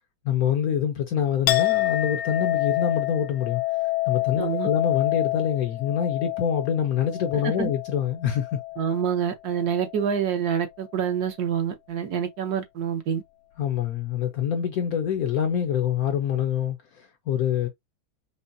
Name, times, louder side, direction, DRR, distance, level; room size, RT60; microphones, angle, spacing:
voice 1, 0.2-3.6 4.1-8.6 13.6-17.7, left 9 dB, 65° left, 0.9 m, -25 dB
Chink clink, 1.5-9.2 9.5-10.2, left 17 dB, 85° left, 1.4 m, -28 dB
voice 2, 4.4-4.7 7.4-7.7 8.8-13.2, right 8 dB, 60° right, 1.1 m, -27 dB
5.4 x 2.0 x 2.6 m
omnidirectional pair, 2.1 m